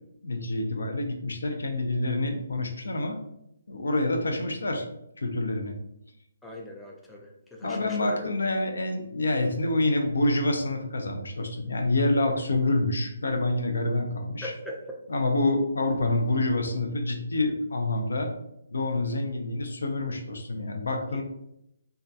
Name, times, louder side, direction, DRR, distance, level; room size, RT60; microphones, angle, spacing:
voice 1, 0.2-3.2 3.7-4.9 5.2-5.7 7.6-14.5 15.1-18.3 18.7-21.2, left 2 dB, 80° left, 4 dB, 0.5 m, -27 dB
voice 2, 6.4-8.3 14.4-15.0 21.1-21.2, left 1 dB, 5° left, -1 dB, 0.3 m, -40 dB
2.3 x 2.2 x 2.6 m, 0.80 s
hypercardioid pair, 150°, 0 cm